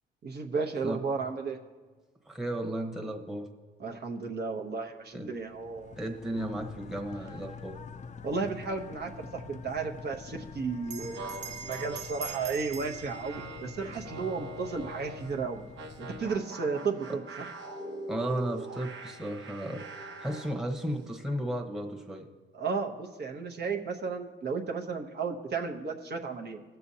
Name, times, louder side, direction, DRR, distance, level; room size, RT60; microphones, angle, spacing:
voice 1, 0.2-1.6 3.8-6.0 6.3-6.5 8.2-15.6 16.0-17.5 22.5-26.6, right 4 dB, 55° right, 2 dB, 1.0 m, -34 dB
voice 2, 2.3-3.5 5.1-5.3 6.0-7.8 17.1-17.2 18.1-22.3, right 1 dB, 5° right, 2 dB, 1.0 m, -34 dB
sound 1, 5.2-16.4, left 5 dB, 35° left, 0.5 m, -47 dB
Bell, 10.8-15.7, right 6 dB, 35° right, 0.5 m, -45 dB
sound 2, 11.0-15.3 15.8-20.6, right 2 dB, 75° right, 1.2 m, -43 dB
18.5 x 6.8 x 2.8 m, 1.4 s
cardioid pair, 90°, 20 cm